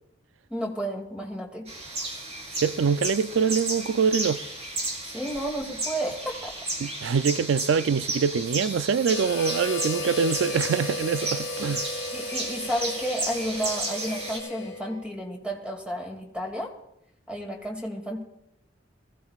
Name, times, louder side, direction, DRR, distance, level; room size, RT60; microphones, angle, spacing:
voice 1, 0.5-1.7 5.0-6.5 12.1-16.7 17.3-18.2, equal, 5° right, 2.4 m, -32 dB
sound 1, 1.7-14.4, right 2 dB, 35° right, 3.8 m, -33 dB
voice 2, 2.5-4.4 6.8-11.9, right 6 dB, 90° right, 0.4 m, -24 dB
Harmonica, 9.0-15.1, left 2 dB, 80° left, 1.3 m, -35 dB
23.0 x 16.0 x 2.4 m
head